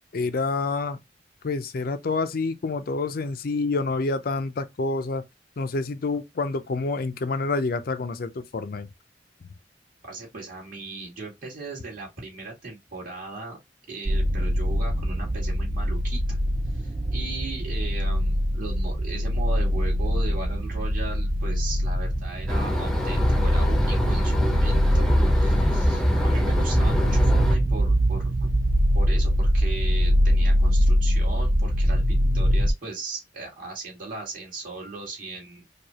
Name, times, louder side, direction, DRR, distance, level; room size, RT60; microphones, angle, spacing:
voice 1, 0.1-1.0 1.4-5.2 5.6-8.9, left 3 dB, 55° left, 0.5 m, -28 dB
voice 2, 10.0-13.6 13.9-16.4 16.7-28.5 28.9-35.7, right 3 dB, 50° right, 2.2 m, -37 dB
sound 1, 14.1-32.7, equal, 20° right, 0.3 m, -23 dB
sound 2, 22.5-27.6, equal, 5° left, 0.7 m, -24 dB
4.7 x 2.4 x 2.8 m
head